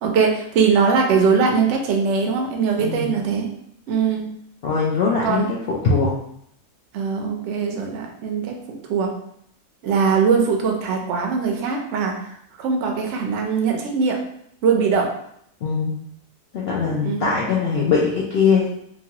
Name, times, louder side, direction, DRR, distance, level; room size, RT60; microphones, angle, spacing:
voice 1, 0.0-3.5 3.9-4.3 5.2-5.5 6.9-9.1 9.8-12.2 12.6-14.2 14.6-15.1 17.0-17.4, right 5 dB, 65° right, 2 dB, 0.8 m, -21 dB
voice 2, 4.6-6.1 15.6-15.9 16.5-18.7, left 5 dB, 75° left, -5 dB, 0.5 m, -21 dB
3.0 x 2.4 x 2.8 m, 0.71 s
omnidirectional pair, 1.6 m